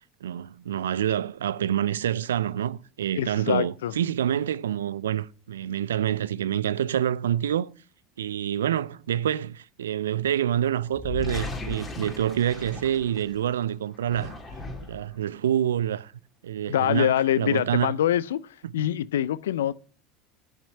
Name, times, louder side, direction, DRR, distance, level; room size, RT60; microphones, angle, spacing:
voice 1, 0.2-7.7 8.2-14.4 14.9-16.1 16.4-17.9 18.8-18.9, right 10 dB, 80° right, 0.3 m, -27 dB
voice 2, 3.2-4.0 16.7-19.7, left 11 dB, 80° left, 0.3 m, -25 dB
sound 1, 10.9-13.5 13.9-15.1, left 3 dB, 30° left, 2.6 m, -36 dB
8.6 x 5.7 x 5.3 m
hypercardioid pair, 75°, 0 cm